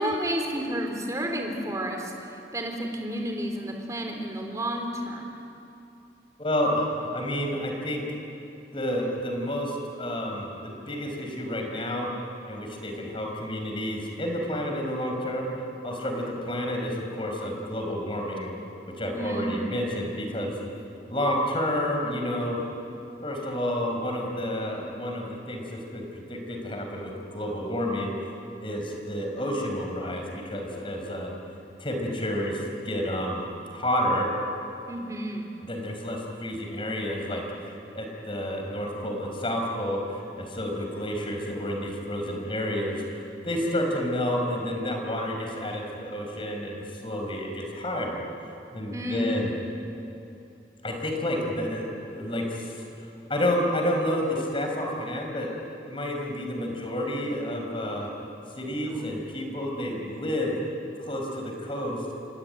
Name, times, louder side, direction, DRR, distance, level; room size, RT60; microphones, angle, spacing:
voice 1, 0.0-5.2 19.1-19.5 34.9-35.5 48.9-49.4 58.9-59.0, equal, 20° right, 2 dB, 3.7 m, -31 dB
voice 2, 6.4-8.0 8.7-12.1 12.5-15.5 15.8-18.5 19.0-20.5 21.1-22.6 23.2-28.1 28.6-31.3 31.8-34.3 35.6-48.2 48.7-49.5 50.8-52.9 53.3-55.5 55.9-58.1 58.6-60.6 61.0-62.0, left 1 dB, 30° left, 2 dB, 5.1 m, -30 dB
28.0 x 23.5 x 9.2 m, 2.7 s
head